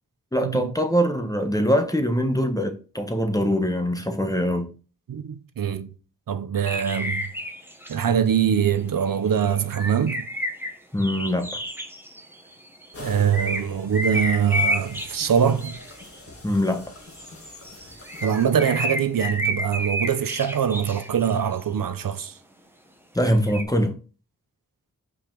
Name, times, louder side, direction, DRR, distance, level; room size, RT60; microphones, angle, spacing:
voice 1, 0.3-4.7 10.9-11.5 16.4-16.8 23.1-23.9, equal, 10° left, 1.1 m, -23 dB
voice 2, 5.1-5.9 6.3-7.3 7.9-10.3 13.0-15.8 18.2-22.3, right 8 dB, 85° right, 0.7 m, -23 dB
sound 1, 6.6-8.0 9.1-12.9 13.3-16.2 17.1-21.6 23.2-23.6, equal, 5° right, 1.2 m, -30 dB
sound 2, 12.9-19.0, left 2 dB, 45° left, 2.0 m, -44 dB
5.5 x 5.0 x 4.5 m
wide cardioid pair, 65°, 33 cm